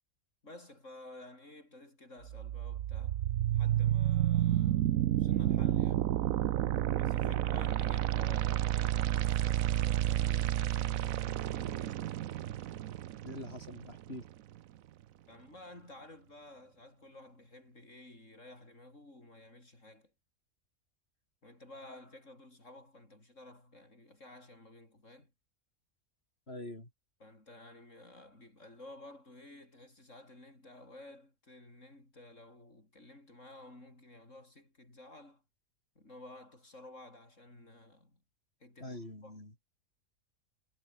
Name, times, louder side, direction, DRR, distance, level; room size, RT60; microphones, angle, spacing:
voice 1, 0.4-3.2 3.5-6.0 7.0-12.1 15.3-20.1 21.4-25.3 27.2-35.4 36.0-38.2 38.6-39.4, left 1 dB, 60° left, 7.3 m, -53 dB
sound 1, 2.3-14.3, right 12 dB, 80° right, 1.1 m, -30 dB
voice 2, 13.2-14.3 26.5-26.9 38.8-39.5, left 1 dB, 45° left, 6.6 m, -44 dB
omnidirectional pair, 1.4 m